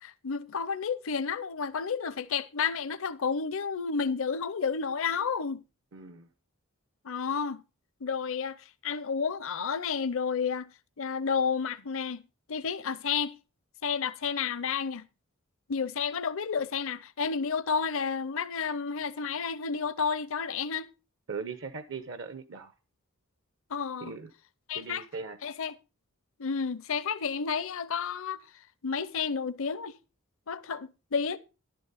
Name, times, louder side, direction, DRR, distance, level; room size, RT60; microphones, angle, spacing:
voice 1, 0.0-5.6 7.0-7.6 8.0-8.6 8.8-10.7 11.0-12.2 12.5-13.4 13.8-15.1 15.7-20.9 23.7-24.1 24.7-25.0 25.4-25.7 26.4-28.4 28.8-29.9 30.5-31.4, left 6 dB, 70° left, 0.6 m, -31 dB
voice 2, 5.9-6.3 21.3-22.7 24.0-24.3 24.7-25.4, right 5 dB, 65° right, 0.9 m, -39 dB
11.5 x 10.5 x 4.1 m
head